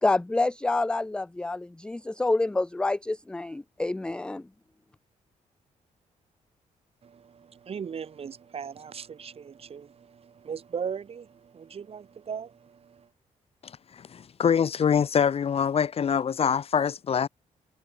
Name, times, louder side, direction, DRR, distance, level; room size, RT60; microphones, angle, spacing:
voice 1, 0.0-4.4, left 2 dB, 5° left, 0.3 m, -27 dB
voice 2, 7.0-13.1, right 7 dB, 45° right, 1.4 m, -38 dB
voice 3, 13.6-17.3, left 7 dB, 45° left, 0.9 m, -25 dB
cardioid pair, 110°, 14 cm